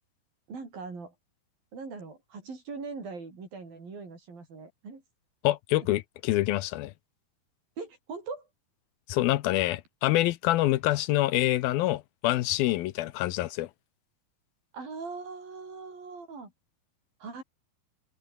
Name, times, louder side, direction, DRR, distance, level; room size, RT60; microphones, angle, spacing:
voice 1, 0.5-1.1 1.7-5.0 7.8-8.5 14.7-16.5 17.2-17.4, right 4 dB, 65° right, 8.7 m, -41 dB
voice 2, 5.4-6.9 9.1-13.7, left 16 dB, 85° left, 2.6 m, -26 dB
open air
omnidirectional pair, 4.4 m